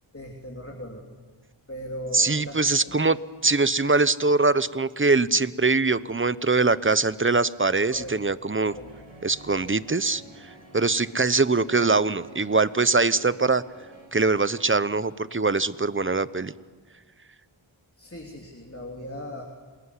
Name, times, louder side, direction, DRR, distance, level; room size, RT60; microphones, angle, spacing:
voice 1, 0.1-1.0 1.7-2.9 7.9-8.1 8.6-8.9 18.0-19.4, left 1 dB, 30° left, 0 dB, 3.4 m, -38 dB
voice 2, 2.1-3.2 3.4-8.7 9.2-10.2 10.7-13.6 14.1-16.5, right 3 dB, 25° right, 16 dB, 0.9 m, -22 dB
sound 1, 8.6-14.1, right 2 dB, 80° right, 5.3 m, -50 dB
27.0 x 21.5 x 9.8 m, 1.4 s
wide cardioid pair, 45°, 48 cm